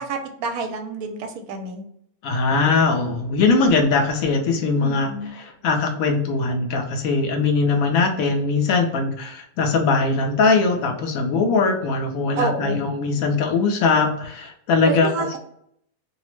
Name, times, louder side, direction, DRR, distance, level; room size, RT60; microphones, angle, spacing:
voice 1, 0.0-1.8 4.8-5.3 12.4-12.8 14.8-15.4, right 4 dB, 75° right, 5 dB, 1.0 m, -28 dB
voice 2, 2.2-15.4, left 4 dB, 70° left, 3 dB, 0.9 m, -21 dB
2.8 x 2.0 x 3.0 m, 0.71 s
omnidirectional pair, 1.6 m